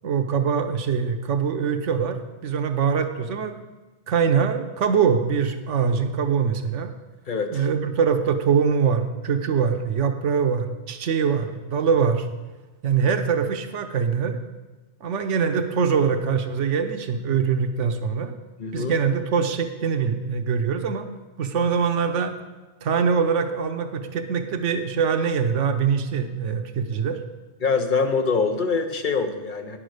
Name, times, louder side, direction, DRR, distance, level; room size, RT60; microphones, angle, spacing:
voice 1, 0.0-3.6 4.1-6.9 7.5-12.3 12.8-14.4 15.0-18.3 18.7-21.1 21.4-22.3 22.8-27.2, right 6 dB, 85° right, 7 dB, 1.1 m, -23 dB
voice 2, 7.3-7.7 18.6-18.9 27.6-29.8, left 4 dB, 45° left, 6 dB, 0.9 m, -24 dB
10.0 x 6.3 x 6.4 m, 1.2 s
omnidirectional pair, 1.2 m